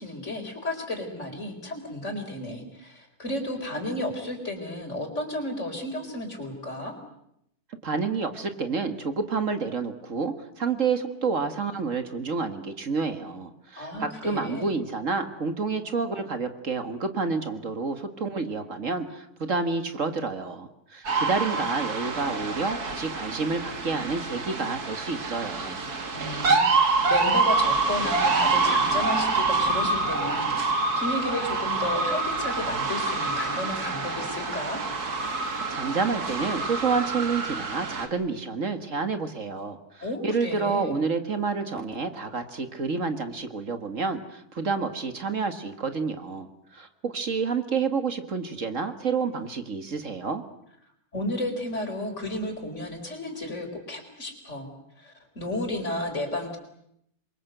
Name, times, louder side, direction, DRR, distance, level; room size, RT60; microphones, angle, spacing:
voice 1, 0.0-7.0 13.8-14.7 26.1-34.8 40.0-40.9 51.1-54.7 55.0-56.6, left 1 dB, 50° left, 5 dB, 4.8 m, -33 dB
voice 2, 7.8-25.8 35.7-50.4, right 4 dB, 55° right, 8 dB, 2.1 m, -29 dB
sound 1, 21.1-38.1, right 3 dB, 90° right, 3.0 m, -26 dB
27.5 x 23.0 x 8.0 m, 0.76 s
omnidirectional pair, 1.6 m